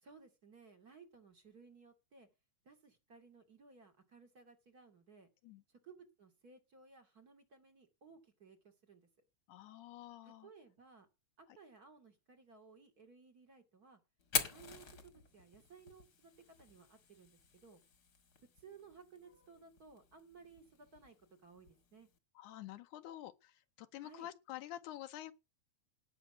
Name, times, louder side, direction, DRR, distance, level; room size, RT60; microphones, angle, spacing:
voice 1, 0.0-2.3 2.6-5.3 5.7-9.1 10.2-11.1 11.4-14.0 14.5-17.8 18.4-22.1 24.0-24.3, right 5 dB, 30° right, 2.7 m, -60 dB
voice 2, 9.5-10.5 22.4-25.3, left 13 dB, 90° left, 2.3 m, -48 dB
Fire, 14.2-22.2, left 6 dB, 40° left, 1.8 m, -45 dB
18.0 x 6.0 x 7.9 m
omnidirectional pair, 3.4 m